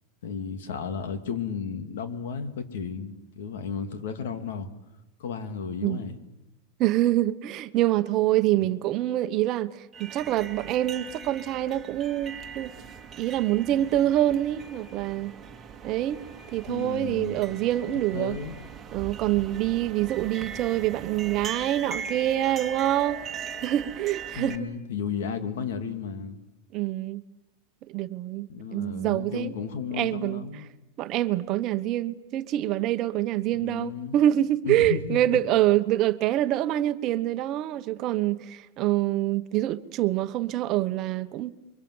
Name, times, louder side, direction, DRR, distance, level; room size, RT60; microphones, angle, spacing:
voice 1, 0.2-4.7 5.2-6.2 8.5-8.7 16.7-17.5 18.1-18.6 20.7-20.8 24.3-26.4 28.5-30.7 33.5-34.2 34.6-35.4, left 6 dB, 85° left, 2.6 m, -34 dB
voice 2, 6.8-9.7 10.0-12.7 13.2-15.3 15.8-16.2 16.5-18.4 18.9-23.2 23.6-24.6 26.7-27.2 27.9-28.5 28.7-29.5 30.0-30.4 31.0-41.5, right 13 dB, 40° right, 1.1 m, -25 dB
sound 1, 9.9-24.6, right 6 dB, 20° right, 2.0 m, -40 dB
29.0 x 23.5 x 8.0 m
supercardioid pair, 150°, 0 cm